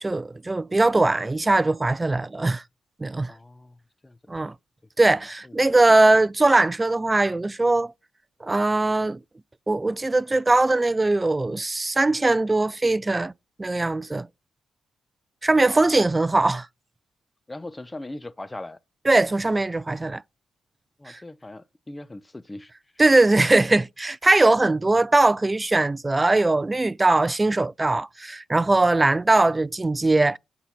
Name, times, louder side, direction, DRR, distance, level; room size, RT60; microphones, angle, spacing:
voice 1, 0.0-2.6 3.0-3.3 4.3-4.5 5.0-7.9 8.4-9.2 9.7-13.3 13.6-14.3 15.4-16.7 19.1-20.2 21.1-21.2 23.0-30.4, right 2 dB, 25° right, 0.3 m, -20 dB
voice 2, 3.3-4.2 5.4-6.0 15.6-15.9 17.5-18.8 21.0-22.7, left 2 dB, 20° left, 0.6 m, -40 dB
7.7 x 4.1 x 5.7 m
supercardioid pair, 50°, 0 cm